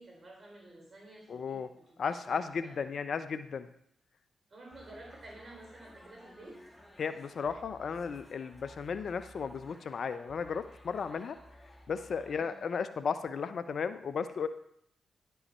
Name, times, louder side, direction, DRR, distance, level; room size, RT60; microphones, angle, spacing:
voice 1, 0.0-2.7 4.5-6.6 12.2-12.6, right 2 dB, 50° right, -1 dB, 3.7 m, -52 dB
voice 2, 1.3-1.7 2.0-3.7 7.0-11.4 11.9-14.5, left 6 dB, 60° left, 12 dB, 0.5 m, -35 dB
sound 1, 4.7-12.4, left 1 dB, 15° left, 1.6 m, -56 dB
10.5 x 5.5 x 4.3 m, 0.71 s
hypercardioid pair, 40°, 0 cm